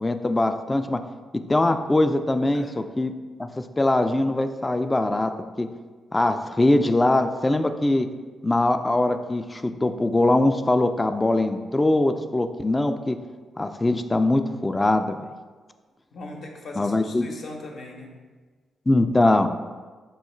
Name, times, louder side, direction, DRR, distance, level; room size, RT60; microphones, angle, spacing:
voice 1, 0.0-1.0 1.5-3.1 3.4-5.3 5.6-5.7 6.1-8.1 8.4-13.2 13.6-15.3 16.8-17.2 18.9-19.5, left 2 dB, 25° left, 8 dB, 0.3 m, -22 dB
voice 2, 16.1-18.1, left 2 dB, 65° left, 0 dB, 0.7 m, -39 dB
4.6 x 2.3 x 4.3 m, 1.4 s
hypercardioid pair, 45°, 0 cm